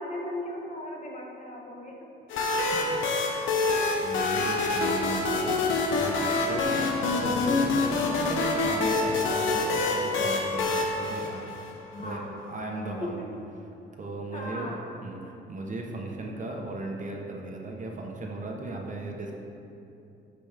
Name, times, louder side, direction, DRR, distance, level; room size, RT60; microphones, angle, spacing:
voice 1, 0.0-2.1 6.6-6.9 11.9-12.5 13.0-13.3 14.3-14.9, left 1 dB, 40° left, -1 dB, 1.5 m, -37 dB
sound 1, 2.3-11.9, left 3 dB, 80° left, 1.1 m, -26 dB
voice 2, 3.4-3.7 4.0-5.6 5.9-6.9 7.2-11.5 12.0-13.2 14.0-19.3, right 2 dB, 40° right, 0 dB, 1.2 m, -37 dB
11.5 x 5.3 x 3.5 m, 2.8 s
cardioid pair, 90°, 20 cm